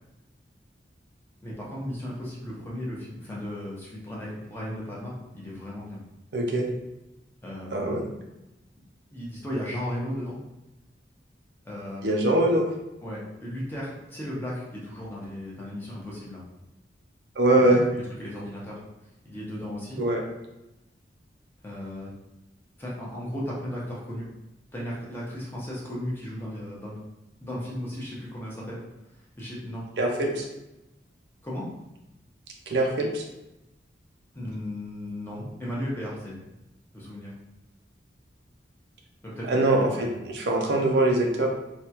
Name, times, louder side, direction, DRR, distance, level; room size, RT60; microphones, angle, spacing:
voice 1, 1.4-6.0 7.4-8.0 9.1-10.4 11.6-12.3 13.0-16.4 17.5-17.7 18.2-18.8 19.2-20.0 21.6-22.1 22.8-24.3 24.7-27.0 27.4-28.8 29.4-29.9 31.4-31.7 34.3-36.4 36.9-37.3 39.2-40.2, left 1 dB, 10° left, -6 dB, 0.7 m, -35 dB
voice 2, 6.3-6.7 7.7-8.0 12.0-12.6 17.4-17.8 20.0-20.2 30.0-30.5 32.7-33.2 39.5-41.5, right 1 dB, 65° right, 0 dB, 0.5 m, -23 dB
3.4 x 2.3 x 2.8 m, 0.93 s
head